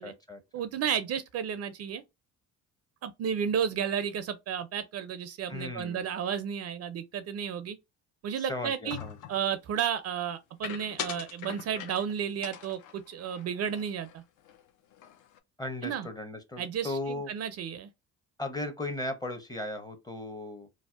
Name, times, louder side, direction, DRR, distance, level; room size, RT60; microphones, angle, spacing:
voice 1, 0.0-0.4 5.5-6.0 8.4-9.2 15.6-17.3 18.4-20.7, left 2 dB, 10° left, 0.7 m, -36 dB
voice 2, 0.5-2.0 3.0-7.8 8.2-9.0 9.3-14.2 15.8-16.1 16.6-17.9, right 8 dB, 50° right, 0.4 m, -32 dB
sound 1, 8.9-9.5 10.6-12.1 12.4-14.2 14.5-14.6 14.9-15.4, left 10 dB, 70° left, 0.5 m, -41 dB
2.6 x 2.0 x 2.3 m
supercardioid pair, 80°, 32 cm